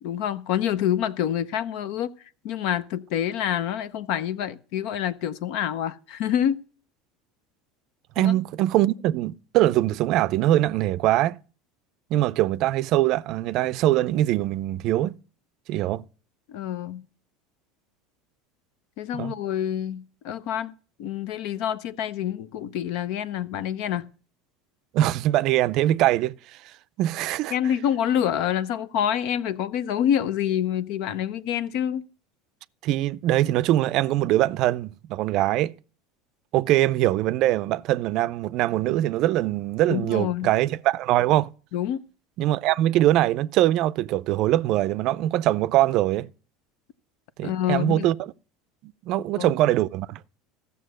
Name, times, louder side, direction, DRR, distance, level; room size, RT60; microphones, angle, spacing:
voice 1, 0.0-2.1 2.4-6.6 8.2-8.4 16.5-17.0 19.0-20.7 21.0-24.1 27.5-32.1 39.9-40.5 41.7-42.0 47.4-48.1 49.4-49.5, left 10 dB, 65° left, 0.7 m, -27 dB
voice 2, 8.2-11.4 12.1-15.2 15.7-16.0 19.1-19.3 24.9-26.4 27.0-27.5 32.8-35.7 36.5-41.5 42.4-46.3 47.4-48.3 48.8-50.2, right 14 dB, 55° right, 0.5 m, -22 dB
14.0 x 6.9 x 6.4 m
supercardioid pair, 115°, 0 cm